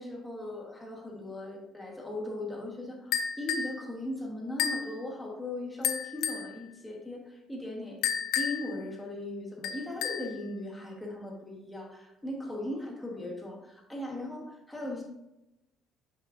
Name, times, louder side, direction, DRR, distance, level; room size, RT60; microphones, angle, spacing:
voice 1, 0.0-8.0 8.4-15.0, left 1 dB, 5° left, -2 dB, 1.2 m, -38 dB
sound 1, 3.1-3.8 4.6-4.9 5.8-6.5 8.0-8.7 9.6-10.3, left 8 dB, 65° left, 0.5 m, -31 dB
7.3 x 5.8 x 2.5 m, 0.92 s
cardioid pair, 160°, 0 cm